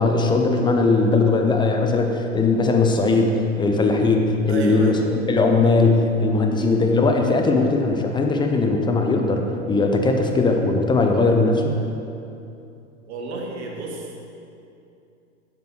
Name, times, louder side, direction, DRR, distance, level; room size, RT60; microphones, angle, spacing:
voice 1, 0.0-11.7, left 3 dB, 10° left, 3 dB, 0.8 m, -19 dB
voice 2, 4.5-5.0 6.3-6.6 13.1-14.1, right 3 dB, 60° right, -1 dB, 1.7 m, -31 dB
8.0 x 6.9 x 4.5 m, 2.7 s
figure-of-eight pair, 90°, 37 cm